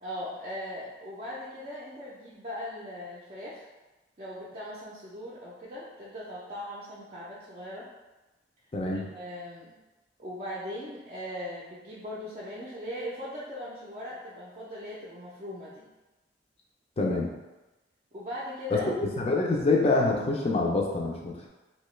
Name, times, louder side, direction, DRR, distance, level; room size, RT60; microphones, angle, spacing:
voice 1, 0.0-3.6 4.2-7.9 8.9-9.7 10.2-15.8 18.1-18.9, equal, 35° right, -8 dB, 0.5 m, -39 dB
voice 2, 8.7-9.1 17.0-17.3 18.7-21.5, left 3 dB, 35° left, -1 dB, 0.5 m, -26 dB
2.8 x 2.3 x 3.1 m, 1.1 s
head